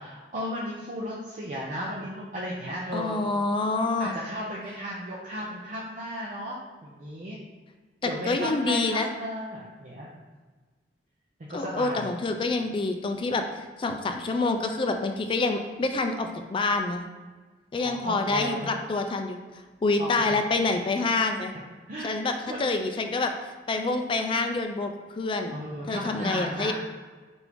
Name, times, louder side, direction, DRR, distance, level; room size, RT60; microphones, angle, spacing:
voice 1, 0.0-3.2 4.0-7.4 8.0-10.2 11.5-12.1 17.8-18.7 20.0-20.4 21.9-22.7 25.5-26.7, equal, 45° right, -5 dB, 0.5 m, -35 dB
voice 2, 2.9-4.1 8.0-9.1 11.5-13.4 13.8-17.0 17.7-19.4 19.8-21.5 22.0-22.3 22.6-23.3 23.7-24.9 25.2-25.6 25.9-26.7, left 3 dB, 30° left, 5 dB, 0.3 m, -27 dB
4.7 x 2.6 x 3.4 m, 1.4 s
head